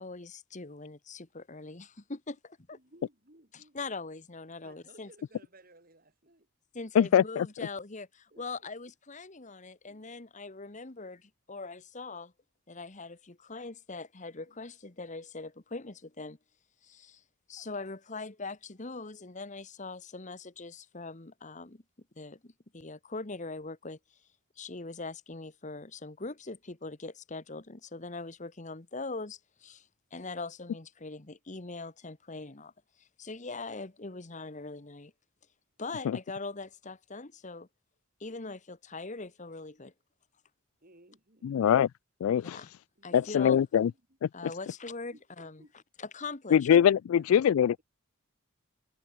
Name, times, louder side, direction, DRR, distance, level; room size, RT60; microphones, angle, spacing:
voice 1, 0.0-2.8 3.5-5.1 6.7-12.3 12.7-16.4 16.8-17.2 17.5-21.8 22.2-24.3 24.6-32.7 33.0-35.1 35.8-37.7 38.2-39.9 42.4-42.7 43.0-43.6 44.3-46.7, left 3 dB, 35° left, 1.3 m, -42 dB
voice 2, 2.7-3.8 4.6-6.5 8.3-8.7 9.9-10.0 14.5-14.6 40.8-41.6 43.0-44.0 45.1-45.7 47.1-47.8, right 2 dB, 45° right, 5.2 m, -59 dB
voice 3, 7.0-7.5 36.1-36.2 41.4-41.9 42.2-42.6 43.1-43.9 44.2-44.3 46.5-47.8, left 9 dB, 75° left, 0.3 m, -23 dB
head